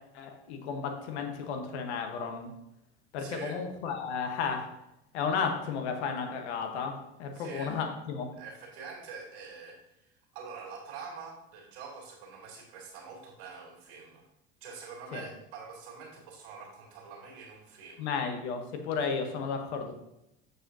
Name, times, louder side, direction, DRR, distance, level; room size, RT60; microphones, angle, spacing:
voice 1, 0.1-2.5 3.1-4.7 5.1-8.3 15.1-15.2 18.0-19.9, left 5 dB, 80° left, 5 dB, 1.1 m, -33 dB
voice 2, 3.2-3.6 7.3-7.8 8.4-14.2 14.6-18.1, right 5 dB, 70° right, -1 dB, 2.1 m, -45 dB
6.7 x 6.5 x 2.7 m, 0.86 s
hypercardioid pair, 80°, 33 cm